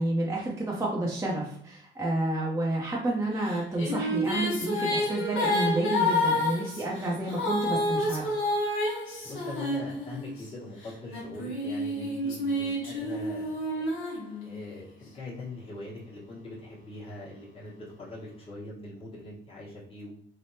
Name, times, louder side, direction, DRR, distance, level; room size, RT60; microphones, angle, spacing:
voice 1, 0.0-8.3, right 1 dB, 15° right, -4 dB, 0.6 m, -30 dB
Female singing, 3.5-10.4 11.1-14.8, left 1 dB, 80° left, 1.2 m, -29 dB
voice 2, 9.2-13.9 14.4-20.1, left 2 dB, 30° left, -6 dB, 1.2 m, -42 dB
3.3 x 2.0 x 2.7 m, 0.68 s
cardioid pair, 90°, 20 cm